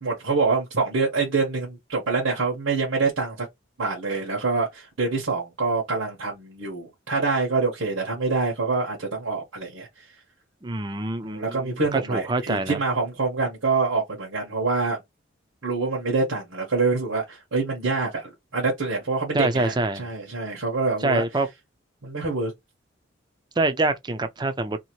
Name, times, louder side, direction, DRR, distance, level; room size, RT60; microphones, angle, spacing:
voice 1, 0.0-3.5 3.8-10.0 11.2-15.0 15.6-21.2 22.0-22.5, right 4 dB, 90° right, 1.0 m, -26 dB
voice 2, 10.6-12.8 19.3-20.1 21.0-21.5 23.6-24.8, right 2 dB, 20° right, 0.4 m, -25 dB
2.8 x 2.5 x 2.9 m
head